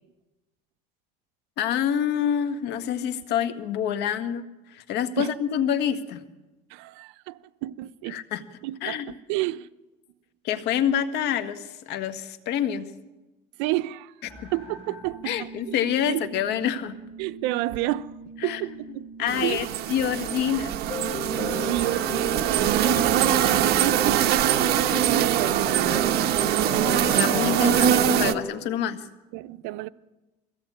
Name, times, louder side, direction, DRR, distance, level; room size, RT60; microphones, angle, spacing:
voice 1, 1.6-6.2 8.1-8.4 8.8-9.1 10.4-12.9 14.4-14.5 15.2-17.0 18.4-18.8 19.2-20.8 27.2-29.0, left 9 dB, 65° left, 1.7 m, -27 dB
voice 2, 6.7-8.2 8.6-9.7 13.6-14.1 14.5-15.8 16.1-16.2 17.2-18.1 18.4-19.6 21.5-23.2 23.8-26.3 29.3-29.9, right 17 dB, 80° right, 0.7 m, -31 dB
sound 1, 14.2-20.6, right 3 dB, 30° left, 4.8 m, -44 dB
sound 2, 19.3-28.3, right 10 dB, 60° right, 1.2 m, -23 dB
sound 3, 20.9-28.5, left 2 dB, 15° left, 6.8 m, -34 dB
22.0 x 16.5 x 8.8 m
cardioid pair, 125°, 19 cm